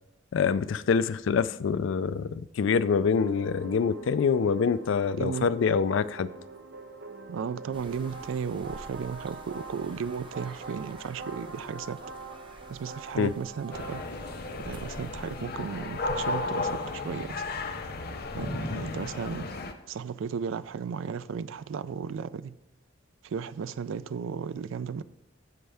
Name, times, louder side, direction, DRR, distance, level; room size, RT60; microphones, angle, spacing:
voice 1, 0.3-6.3 13.2-13.3, left 5 dB, 70° left, 0.4 m, -25 dB
sound 1, 3.1-14.4, right 3 dB, 55° right, 0.7 m, -44 dB
voice 2, 5.2-5.5 7.3-12.0 12.7-14.0 14.7-17.4 18.4-19.5 19.9-22.6 23.2-25.0, right 6 dB, 75° right, 0.4 m, -35 dB
sound 2, 7.7-15.4, right 2 dB, 25° right, 0.9 m, -50 dB
sound 3, 13.7-19.7, left 3 dB, 50° left, 0.8 m, -34 dB
15.5 x 5.4 x 3.4 m
head